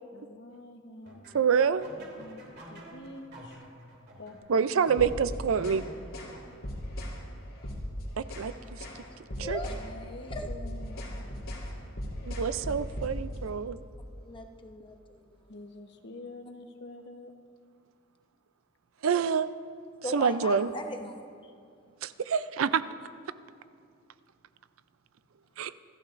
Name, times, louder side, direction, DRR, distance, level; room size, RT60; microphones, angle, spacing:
voice 1, 0.1-1.3 2.0-3.6 4.2-4.6 5.0-5.3 9.4-11.6 15.5-17.4, left 2 dB, 60° left, 5 dB, 1.0 m, -47 dB
sound 1, 1.1-7.0, right 1 dB, 55° right, 3.0 m, -50 dB
voice 2, 1.3-1.9 4.5-5.8 8.2-8.8 9.5-9.6 12.2-13.8 19.0-19.5 20.1-20.7 22.0-22.8 25.6-25.7, right 6 dB, 85° right, 14 dB, 0.5 m, -27 dB
sound 2, 4.9-5.8 6.1-6.4 6.6-7.2 7.6-8.5 8.8-9.0 9.3-9.8 10.1-13.4, equal, 80° left, 3.3 m, -37 dB
voice 3, 9.4-10.5 14.2-15.4 20.0-21.5, left 1 dB, 25° left, 4 dB, 1.0 m, -39 dB
27.0 x 14.0 x 2.6 m, 2.4 s
head